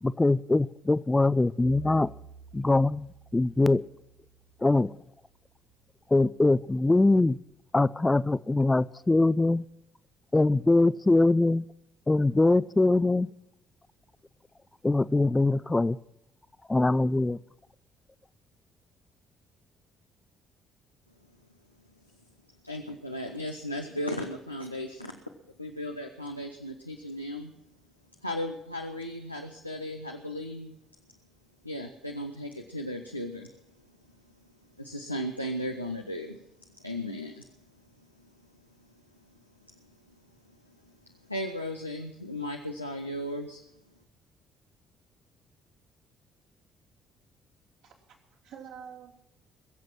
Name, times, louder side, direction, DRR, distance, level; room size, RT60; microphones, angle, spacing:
voice 1, 0.0-2.1 2.5-3.8 4.6-4.9 6.1-7.4 7.7-9.6 10.3-11.6 12.1-13.3 14.8-16.0 16.7-17.4, left 2 dB, 15° left, 0.5 m, -23 dB
Bowed string instrument, 1.6-5.8, right 5 dB, 80° right, 0.9 m, -50 dB
voice 2, 22.6-25.2 25.6-27.5 28.2-30.8 31.6-33.5 34.8-36.4 36.8-37.5 41.3-43.6, left 1 dB, 90° left, 0.7 m, -36 dB
voice 3, 47.8-49.3, right 7 dB, 65° right, 3.1 m, -48 dB
22.0 x 7.7 x 6.1 m
figure-of-eight pair, 45°, 0 cm